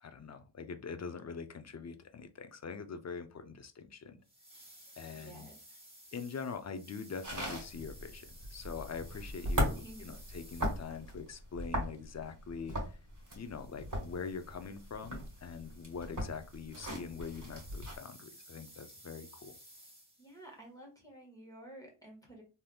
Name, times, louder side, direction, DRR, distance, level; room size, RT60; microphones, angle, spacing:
voice 1, 0.0-4.2 5.0-5.5 6.1-13.0 13.3-19.6, left 5 dB, 35° left, 0.5 m, -43 dB
sound 1, 4.2-11.3 13.2-20.4, right 1 dB, 10° right, 1.7 m, -57 dB
voice 2, 5.1-5.6 9.7-10.2 20.2-22.4, right 1 dB, 5° left, 1.3 m, -52 dB
sound 2, 7.2-18.0, equal, 40° right, 1.5 m, -38 dB
3.3 x 2.8 x 2.2 m
cardioid pair, 50°, 49 cm